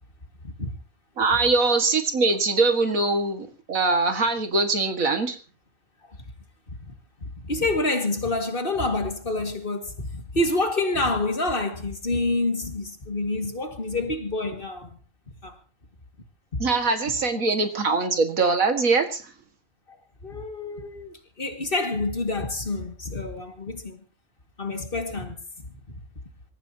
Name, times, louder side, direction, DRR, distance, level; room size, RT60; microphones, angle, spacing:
voice 1, 1.2-5.4 16.6-19.2, right 3 dB, 90° right, 2.3 m, -22 dB
voice 2, 7.2-15.0 15.4-15.6 16.5-16.6 17.3-17.5 20.2-24.0 24.6-25.4 25.9-26.0, left 2 dB, 40° left, 2.3 m, -28 dB
26.0 x 14.5 x 2.9 m
omnidirectional pair, 1.4 m